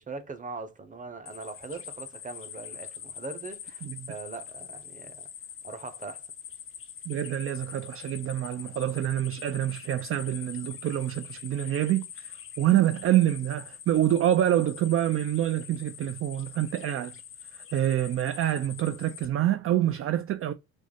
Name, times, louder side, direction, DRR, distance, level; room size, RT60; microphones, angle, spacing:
voice 1, 0.1-5.3 5.6-6.3, right 4 dB, 25° right, 0.8 m, -41 dB
sound 1, 1.3-19.3, left 8 dB, 45° left, 0.6 m, -44 dB
voice 2, 3.8-4.1 7.1-17.1 17.5-20.5, right 12 dB, 45° right, 0.4 m, -26 dB
3.5 x 2.0 x 3.7 m
cardioid pair, 90°, 30 cm